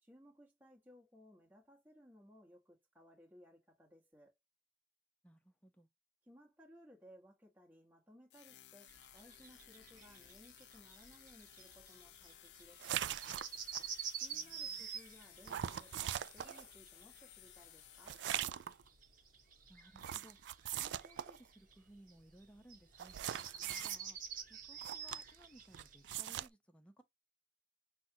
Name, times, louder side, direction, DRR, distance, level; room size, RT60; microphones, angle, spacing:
voice 1, 0.0-4.4 6.3-13.1 14.2-18.2 23.5-23.9, equal, 10° right, 1.4 m, -62 dB
voice 2, 5.2-5.9 14.3-14.8 19.7-20.4 20.8-23.2 23.8-24.2 24.5-27.0, equal, 5° left, 0.8 m, -62 dB
sound 1, 8.3-18.9, left 12 dB, 70° left, 0.5 m, -59 dB
sound 2, 8.9-26.1, right 7 dB, 50° right, 1.1 m, -49 dB
sound 3, 12.8-13.9 15.5-16.7 18.1-18.8 19.9-21.4 23.0-24.0 24.8-25.4 25.7-26.5, right 11 dB, 80° right, 0.3 m, -41 dB
5.9 x 2.4 x 2.8 m
head